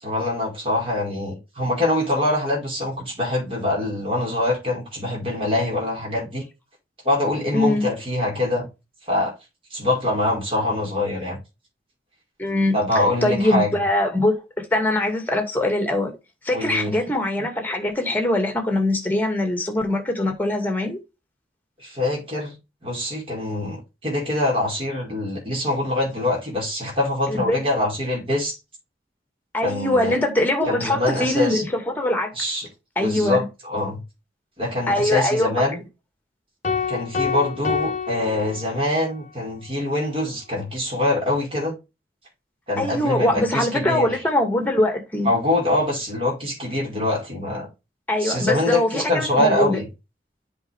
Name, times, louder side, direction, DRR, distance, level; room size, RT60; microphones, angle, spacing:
voice 1, 0.0-6.4 7.0-8.7 9.1-9.3 9.7-11.4 12.7-13.8 16.5-16.9 21.8-22.6 22.8-28.6 29.6-30.2 30.7-31.6 32.3-32.7 33.0-34.0 34.6-35.8 36.9-41.7 42.7-44.1 45.2-47.7 48.2-49.9, left 1 dB, 30° right, 5.1 m, -24 dB
voice 2, 7.5-7.9 12.4-14.4 14.7-16.1 16.4-21.0 27.3-27.6 29.5-32.3 33.0-33.5 34.9-35.6 42.8-45.3 48.1-49.8, left 1 dB, 10° left, 2.1 m, -22 dB
sound 1, 36.6-39.1, left 6 dB, 45° left, 1.2 m, -27 dB
8.0 x 5.4 x 3.5 m
head